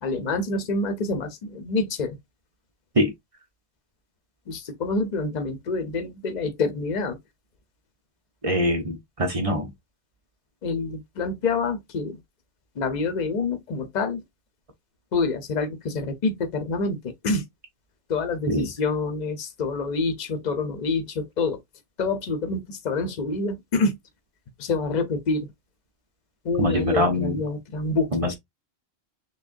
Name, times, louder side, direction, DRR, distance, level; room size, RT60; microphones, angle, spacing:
voice 1, 0.0-2.2 4.5-7.2 10.6-12.2 12.8-14.2 15.1-17.4 18.1-21.6 22.0-24.0 24.6-25.5 26.4-28.4, left 3 dB, 45° left, 0.8 m, -27 dB
voice 2, 8.4-9.7 18.5-18.7 26.6-27.4 28.1-28.4, equal, 35° right, 0.9 m, -23 dB
6.0 x 2.3 x 2.5 m
omnidirectional pair, 1.1 m